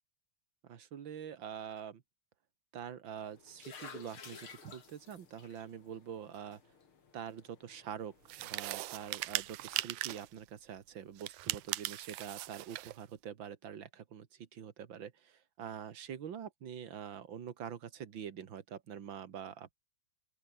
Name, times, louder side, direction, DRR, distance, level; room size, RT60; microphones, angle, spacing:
voice 1, 0.6-2.0 2.7-6.6 7.1-19.7, right 8 dB, 45° right, 1.9 m, -45 dB
sound 1, 3.2-8.8, left 6 dB, 45° left, 3.4 m, -55 dB
sound 2, 8.3-10.3 11.2-13.0, right 17 dB, 80° right, 2.1 m, -39 dB
open air
omnidirectional pair, 3.5 m